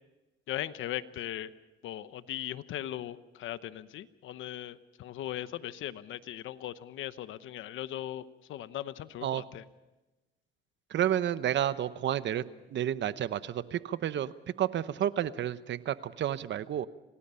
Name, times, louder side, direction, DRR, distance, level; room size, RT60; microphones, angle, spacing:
voice 1, 0.5-1.5 1.8-9.6, left 12 dB, 80° left, 14 dB, 1.0 m, -39 dB
voice 2, 10.9-12.4 12.7-14.3 14.6-16.9, right 11 dB, 65° right, 14 dB, 1.0 m, -30 dB
26.5 x 18.5 x 5.6 m, 1.1 s
cardioid pair, 90°, 20 cm